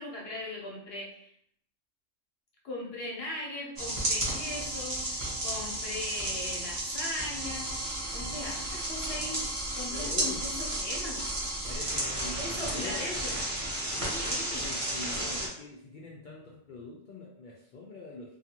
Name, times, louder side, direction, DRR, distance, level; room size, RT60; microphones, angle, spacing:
voice 1, 0.0-1.3 2.6-7.7 8.1-9.5 9.7-11.2 12.4-13.6 14.0-14.6, left 1 dB, 55° left, -3 dB, 0.9 m, -39 dB
sound 1, 3.8-15.5, right 1 dB, 30° right, 0.8 m, -33 dB
voice 2, 9.9-10.4 11.7-13.1 13.9-18.4, left 3 dB, 70° left, -3 dB, 0.4 m, -44 dB
2.9 x 2.5 x 2.8 m, 0.69 s
omnidirectional pair, 1.3 m